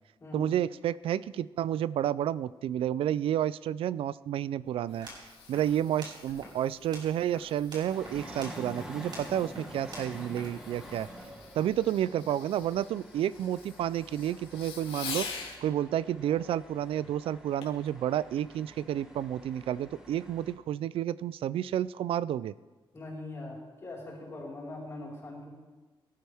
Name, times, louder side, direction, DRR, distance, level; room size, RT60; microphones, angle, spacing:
voice 1, 0.3-5.1 5.5-11.1 11.5-15.3 15.6-22.5, right 11 dB, 80° right, 18 dB, 0.4 m, -30 dB
Fireworks, 4.6-15.6 17.6-17.9 18.5-18.6, left 5 dB, 80° left, 2.6 m, -46 dB
sound 1, 4.8-11.2, right 1 dB, 50° right, 4.7 m, -49 dB
sound 2, 7.8-20.6, equal, 5° right, 1.8 m, -48 dB
voice 2, 22.9-25.5, left 2 dB, 30° left, -4 dB, 4.6 m, -41 dB
23.0 x 12.5 x 3.5 m, 1.3 s
wide cardioid pair, 145°, 9 cm